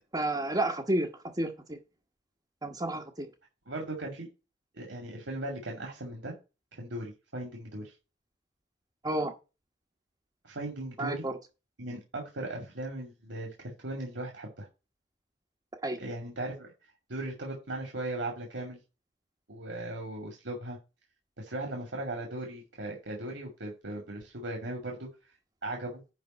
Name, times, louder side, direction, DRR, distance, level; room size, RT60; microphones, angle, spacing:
voice 1, 0.1-1.1 1.4-1.5 2.6-3.3 9.0-9.3 11.0-11.3 15.8-16.0, right 1 dB, 20° right, -2 dB, 1.1 m, -30 dB
voice 2, 3.7-4.3 4.7-6.3 6.7-7.9 10.4-11.3 11.8-14.7 16.0-16.7 17.1-18.8 19.5-20.8 21.4-25.1 25.6-26.0, right 1 dB, 80° right, 0 dB, 2.5 m, -38 dB
10.5 x 3.7 x 6.6 m, 0.29 s
head